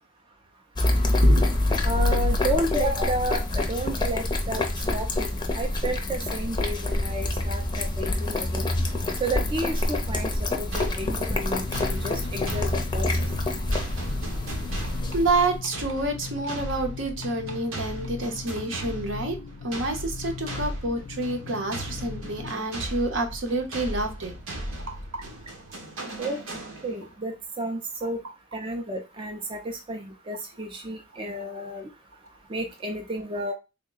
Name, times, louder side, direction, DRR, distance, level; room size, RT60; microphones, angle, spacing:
sound 1, 0.8-15.6, left 2 dB, 20° left, 0.5 m, -26 dB
voice 1, 1.2-1.6 15.1-19.4 19.6-24.3 24.9-25.2, right 2 dB, 65° right, 4 dB, 0.8 m, -28 dB
voice 2, 1.8-4.6 4.9-8.7 9.2-10.3 10.6-13.1 26.2-26.4 26.8-28.2 28.5-31.9 32.5-33.5, right 1 dB, 25° right, 2 dB, 0.5 m, -31 dB
sound 2, 10.7-27.2, right 1 dB, 90° right, 1.1 m, -37 dB
sound 3, 11.3-22.5, left 7 dB, 75° left, 0.4 m, -40 dB
3.6 x 2.1 x 3.8 m, 0.27 s
head